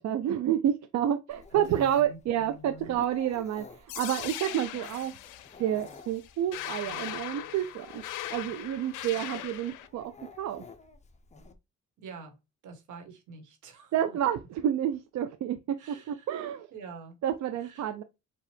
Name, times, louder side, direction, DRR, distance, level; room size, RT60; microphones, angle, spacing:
voice 1, 0.0-5.1 5.6-8.0 8.3-10.1 10.4-10.6 13.9-16.7 17.2-18.0, right 10 dB, 65° right, 0.5 m, -29 dB
Dog, 1.3-11.5, left 4 dB, 25° left, 0.7 m, -52 dB
voice 2, 1.5-3.0 12.0-12.4 12.6-14.2 15.8-16.3 16.7-17.2 17.6-17.9, right 3 dB, 80° right, 1.4 m, -46 dB
sound 1, 3.9-9.9, left 13 dB, 90° left, 0.5 m, -39 dB
4.6 x 2.5 x 3.3 m
cardioid pair, 90°, 30 cm